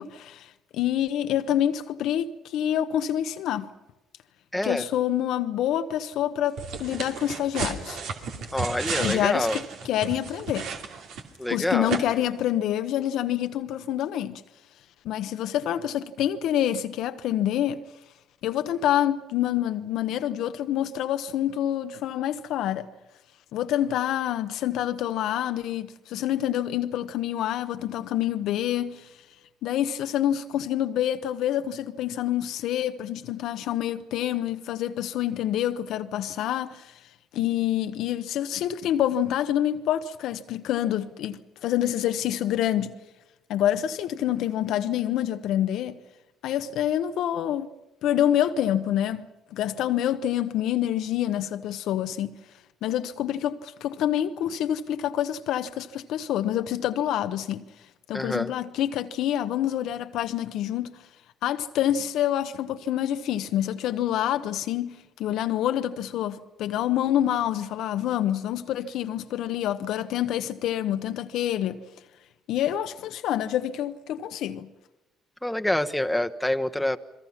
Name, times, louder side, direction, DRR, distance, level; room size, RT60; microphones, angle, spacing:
voice 1, 0.0-3.7 4.6-8.0 8.9-10.7 11.5-14.4 15.0-17.8 18.4-22.9 23.5-29.1 29.6-37.0 37.3-42.9 43.5-46.0 46.4-47.7 48.0-52.3 52.8-57.6 58.1-61.0 61.4-71.8 72.5-74.7, left 11 dB, 70° left, 0.9 m, -27 dB
voice 2, 4.5-4.8 8.5-9.6 11.4-11.9 58.1-58.5 75.4-77.0, left 1 dB, 5° left, 1.2 m, -26 dB
sound 1, 6.6-11.5 11.9-12.0, right 5 dB, 70° right, 2.7 m, -33 dB
29.5 x 21.5 x 5.8 m
hypercardioid pair, 55°, 0 cm